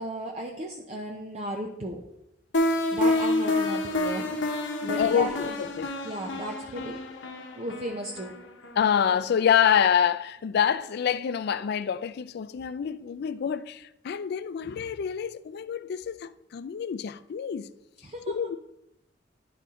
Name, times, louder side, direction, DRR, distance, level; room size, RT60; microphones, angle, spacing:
voice 1, 0.0-2.2 2.9-4.4 4.8-5.6 6.0-7.0 7.6-8.4 18.0-18.4, right 1 dB, 35° right, 0.6 m, -35 dB
sound 1, 2.5-9.3, left 2 dB, 75° left, 0.9 m, -29 dB
voice 2, 5.0-5.9 8.8-17.7 18.3-18.6, left 8 dB, 60° left, 0.3 m, -26 dB
11.5 x 4.2 x 3.6 m
head